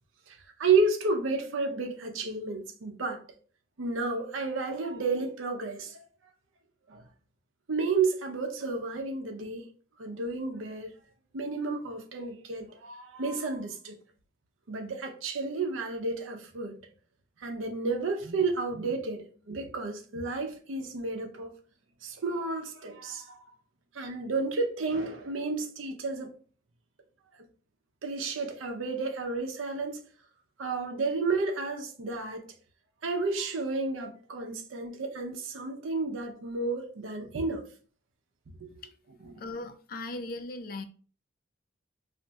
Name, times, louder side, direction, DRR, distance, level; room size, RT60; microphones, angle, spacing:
voice 1, 0.3-3.2 3.8-6.0 6.9-7.0 7.7-9.7 10.0-10.9 11.3-14.0 14.7-16.7 17.4-21.5 22.0-23.4 23.9-26.3 28.0-30.0 30.6-32.4 33.0-37.7 38.6-38.7 39.2-39.3, right 3 dB, 85° right, 0.6 m, -31 dB
voice 2, 39.4-40.8, left 2 dB, 45° left, 0.4 m, -38 dB
2.5 x 2.3 x 3.9 m
head